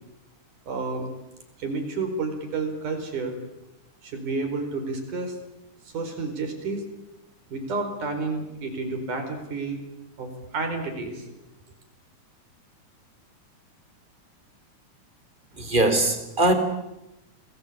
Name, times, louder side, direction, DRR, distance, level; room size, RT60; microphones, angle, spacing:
voice 1, 0.7-1.1 1.6-3.4 4.0-5.4 5.9-6.8 7.5-9.8 10.2-11.3, right 3 dB, 85° right, 6 dB, 6.1 m, -30 dB
voice 2, 15.6-16.5, right 2 dB, 15° right, 8 dB, 3.5 m, -21 dB
29.5 x 20.5 x 8.7 m, 0.92 s
omnidirectional pair, 3.5 m